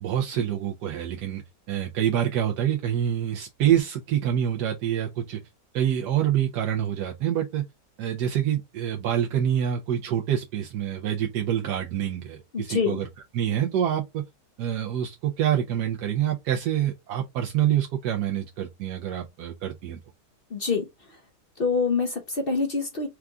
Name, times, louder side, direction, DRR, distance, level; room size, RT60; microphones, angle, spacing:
voice 1, 0.0-1.4 1.7-5.4 5.7-7.6 8.0-13.1 13.3-14.0 14.6-20.0, right 10 dB, 80° right, 1.3 m, -26 dB
voice 2, 12.5-13.0 20.5-21.2 21.6-23.1, left 4 dB, 50° left, 0.7 m, -26 dB
4.6 x 2.4 x 3.6 m
omnidirectional pair, 1.8 m